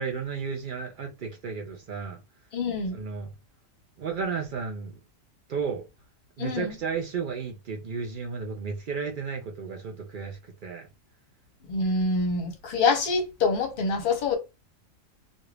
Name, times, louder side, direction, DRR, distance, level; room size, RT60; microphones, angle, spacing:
voice 1, 0.0-2.2 2.9-3.3 4.0-5.0 5.5-5.8 6.4-10.9, right 5 dB, 65° right, 0.5 m, -33 dB
voice 2, 2.5-3.0 6.4-6.7 11.7-14.4, left 4 dB, 45° left, 0.8 m, -26 dB
2.5 x 2.3 x 3.1 m
omnidirectional pair, 1.4 m